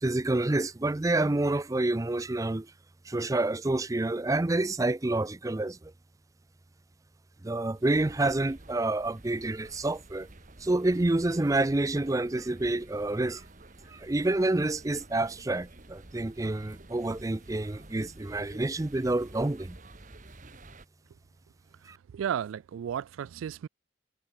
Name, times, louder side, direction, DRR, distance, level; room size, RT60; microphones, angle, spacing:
voice 1, 0.0-2.7 3.0-5.9 7.4-10.3 10.6-13.4 13.9-19.8 21.9-22.0, right 2 dB, 15° right, 0.5 m, -28 dB
sound 1, 7.9-20.9, right 2 dB, 40° right, 1.5 m, -51 dB
voice 2, 22.1-23.7, right 9 dB, 90° right, 0.3 m, -33 dB
head